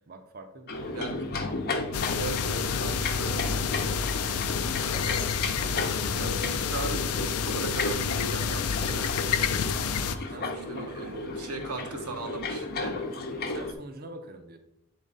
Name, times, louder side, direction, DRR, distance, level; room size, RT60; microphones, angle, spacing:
voice 1, 0.1-0.9 10.3-11.3 13.5-14.6, right 2 dB, 45° right, 6 dB, 0.7 m, -45 dB
sound 1, 0.7-13.7, left 2 dB, 45° left, 0.8 m, -34 dB
voice 2, 0.9-1.3 2.1-5.3 6.1-9.3 10.4-13.0, right 3 dB, 85° right, 5 dB, 1.0 m, -39 dB
sound 2, 1.9-10.2, left 6 dB, 85° left, 0.5 m, -29 dB
8.6 x 3.8 x 4.0 m, 0.82 s
head